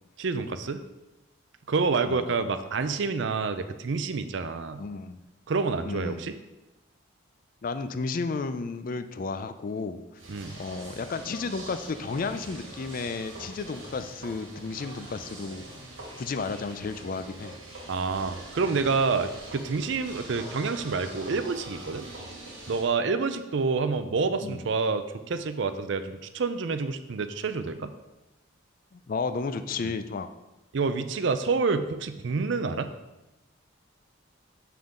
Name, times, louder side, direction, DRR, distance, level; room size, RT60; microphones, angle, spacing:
voice 1, 0.2-0.8 1.7-4.8 5.5-6.3 10.3-10.5 17.9-22.0 22.7-27.9 29.8-29.9 30.7-32.9, right 4 dB, 60° right, 10 dB, 0.5 m, -28 dB
voice 2, 4.8-5.2 5.8-6.2 7.6-10.0 10.6-15.6 16.2-17.5 24.4-24.6 28.9-30.3, left 4 dB, 40° left, 10 dB, 0.4 m, -33 dB
sound 1, 10.2-22.8, right 1 dB, 75° right, 2.0 m, -43 dB
7.0 x 5.8 x 3.7 m, 1.0 s
head